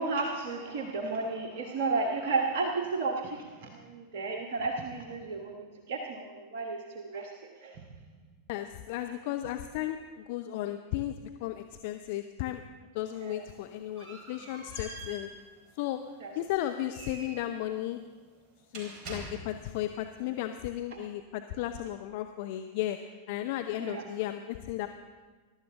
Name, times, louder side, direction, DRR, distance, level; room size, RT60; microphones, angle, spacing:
voice 1, 0.0-7.3 7.6-7.8 13.1-13.4 16.2-16.3 23.8-24.0, right 3 dB, 50° right, 1 dB, 1.3 m, -33 dB
voice 2, 8.5-12.6 12.9-15.3 15.8-16.0 16.4-18.0 18.7-23.0 23.3-24.9, left 13 dB, 50° left, 7 dB, 0.6 m, -34 dB
sound 1, 13.2-19.8, right 2 dB, 30° right, 4.4 m, -47 dB
22.0 x 12.0 x 3.7 m, 1.4 s
figure-of-eight pair, 90°, 0 cm